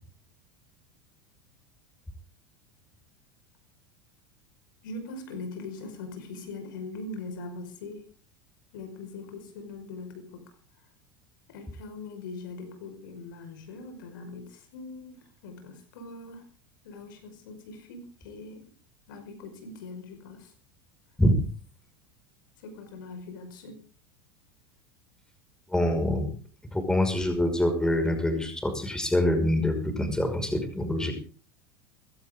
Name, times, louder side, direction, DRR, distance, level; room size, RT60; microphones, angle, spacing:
voice 1, 4.8-8.1 8.7-10.9 11.5-16.5 16.8-18.7 19.1-20.5 22.6-23.8, left 3 dB, 60° left, 6 dB, 5.3 m, -41 dB
voice 2, 25.7-26.3 26.7-31.1, left 1 dB, 5° left, 6 dB, 5.8 m, -25 dB
20.0 x 17.0 x 3.8 m, 0.41 s
figure-of-eight pair, 80°, 12 cm